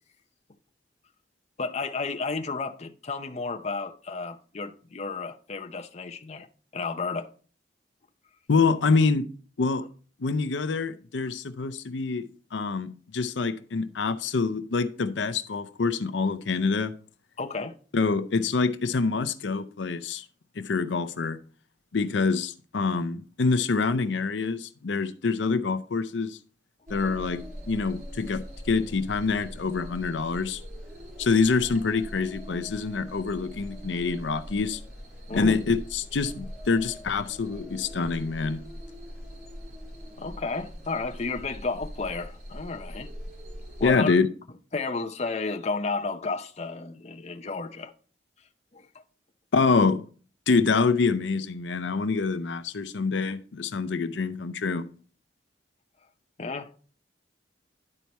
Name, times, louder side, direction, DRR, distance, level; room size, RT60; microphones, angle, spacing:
voice 1, 1.6-6.5 6.7-7.3 17.4-17.7 35.3-35.6 40.2-43.1 43.8-44.1 44.7-47.9 48.7-48.9 56.4-56.8, left 3 dB, 40° left, 0.6 m, -32 dB
voice 2, 8.5-9.3 9.6-9.9 10.2-16.9 17.9-20.2 20.6-21.4 21.9-26.4 26.9-30.6 31.2-34.8 35.3-38.6 43.8-44.3 49.5-50.0 50.5-54.9, left 4 dB, 85° left, 0.6 m, -26 dB
sound 1, 26.9-43.9, equal, 55° right, 3.6 m, -42 dB
11.0 x 4.6 x 4.2 m
head